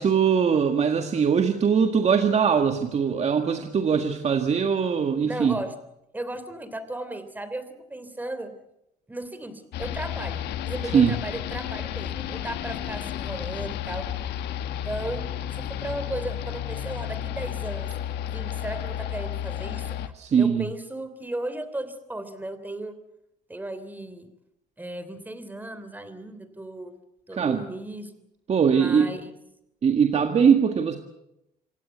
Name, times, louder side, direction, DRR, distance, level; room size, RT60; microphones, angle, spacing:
voice 1, 0.0-5.6 10.9-11.1 20.1-20.7 27.3-27.6 28.5-29.1 29.8-31.0, right 6 dB, 40° right, 5 dB, 1.8 m, -21 dB
voice 2, 5.3-5.7 6.1-8.5 9.1-14.1 14.7-15.3 15.6-17.9 18.3-20.0 20.4-23.0 23.5-24.3 24.8-26.9 27.3-28.1 28.7-29.3, right 1 dB, 10° right, 11 dB, 3.1 m, -35 dB
sound 1, 9.7-20.1, left 10 dB, 80° left, 1.6 m, -32 dB
26.5 x 17.0 x 8.1 m, 0.84 s
cardioid pair, 110°, 17 cm